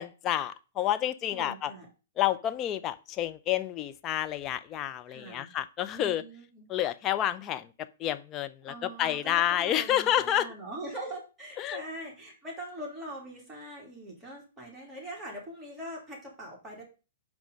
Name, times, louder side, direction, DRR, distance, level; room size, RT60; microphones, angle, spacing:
voice 1, 0.0-1.7 2.2-6.2 6.7-7.7 8.0-10.5 11.6-11.8, left 12 dB, 25° left, 0.6 m, -29 dB
voice 2, 1.3-1.9 5.1-5.5 5.9-6.7 8.7-16.8, right 1 dB, 10° right, 2.8 m, -42 dB
10.0 x 3.6 x 5.2 m
figure-of-eight pair, 115°, 0 cm